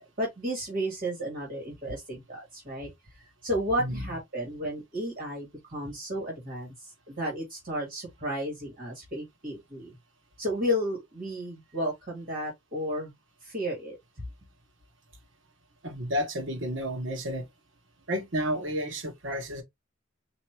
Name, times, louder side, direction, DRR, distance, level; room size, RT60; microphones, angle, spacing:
voice 1, 0.0-2.9 3.4-6.7 7.1-9.9 10.4-13.1 13.4-14.0, equal, 45° right, 2.1 m, -32 dB
voice 2, 15.8-17.5 18.1-19.6, equal, 70° right, 1.1 m, -31 dB
4.3 x 2.8 x 2.9 m
head